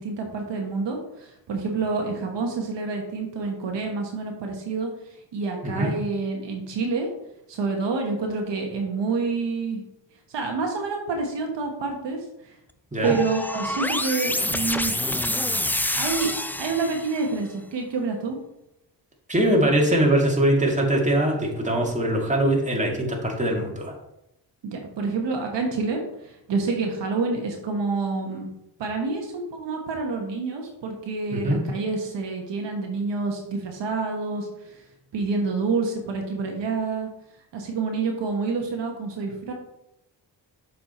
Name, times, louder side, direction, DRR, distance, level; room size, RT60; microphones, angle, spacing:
voice 1, 0.0-4.9 5.3-7.1 7.5-9.8 10.3-12.6 13.0-15.0 15.9-16.3 16.6-18.4 24.6-28.5 28.8-34.8 35.1-37.1 37.5-39.5, right 4 dB, 75° right, 2 dB, 1.4 m, -28 dB
sound 1, 13.0-17.3, left 1 dB, 5° left, 0.4 m, -27 dB
voice 2, 19.3-24.0 31.3-31.6, right 1 dB, 15° right, -1 dB, 2.2 m, -22 dB
7.1 x 5.1 x 4.3 m, 0.84 s
cardioid pair, 65°, 43 cm